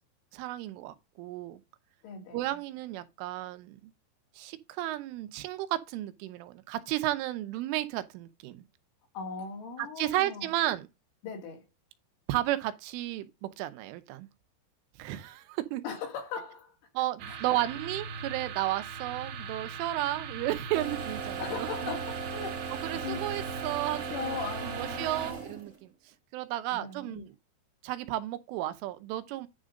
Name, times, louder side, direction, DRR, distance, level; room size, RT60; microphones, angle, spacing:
voice 1, 0.3-1.6 2.3-3.9 4.4-8.7 9.8-10.9 12.3-14.3 15.0-15.8 17.0-22.0 22.8-24.4 24.8-25.9 26.3-27.4 27.8-29.5, right 15 dB, 85° right, 3.4 m, -33 dB
voice 2, 2.0-2.4 9.1-10.5 11.2-11.6 15.8-16.7 17.3-17.6 21.4-23.2 23.9-25.4 26.8-27.3, left 5 dB, 80° left, 5.1 m, -39 dB
sound 1, 17.2-25.3, right 6 dB, 70° right, 2.3 m, -40 dB
sound 2, 20.7-25.9, right 5 dB, 35° right, 1.3 m, -38 dB
10.5 x 3.8 x 6.4 m
omnidirectional pair, 5.5 m